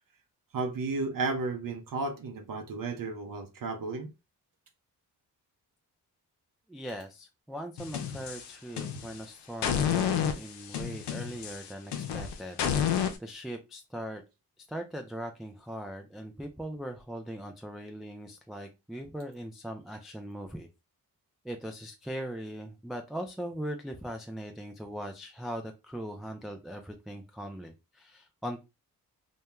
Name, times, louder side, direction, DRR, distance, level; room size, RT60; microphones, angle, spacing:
voice 1, 0.5-4.1, right 3 dB, 55° right, 0.7 m, -33 dB
voice 2, 6.7-14.2 14.7-20.7 21.4-28.6, equal, ahead, 0.3 m, -40 dB
sound 1, 7.8-9.2 9.6-13.2, left 8 dB, 90° left, 0.5 m, -30 dB
2.2 x 2.2 x 2.9 m
supercardioid pair, 50°, 40 cm